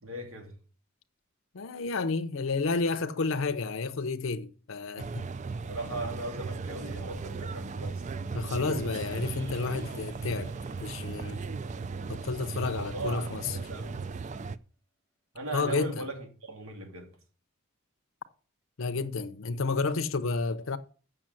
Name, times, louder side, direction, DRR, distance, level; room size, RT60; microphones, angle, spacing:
voice 1, 0.0-0.5 5.7-8.1 12.7-14.1 15.3-17.1, right 2 dB, 75° right, 2.6 m, -38 dB
voice 2, 1.5-5.3 8.3-10.5 10.8-11.4 12.1-13.6 15.5-16.0 18.8-20.8, left 4 dB, 65° left, 0.6 m, -31 dB
sound 1, 5.0-14.6, right 4 dB, 35° right, 0.4 m, -37 dB
sound 2, 9.0-13.5, right 1 dB, 55° right, 2.3 m, -56 dB
7.6 x 6.3 x 7.6 m
head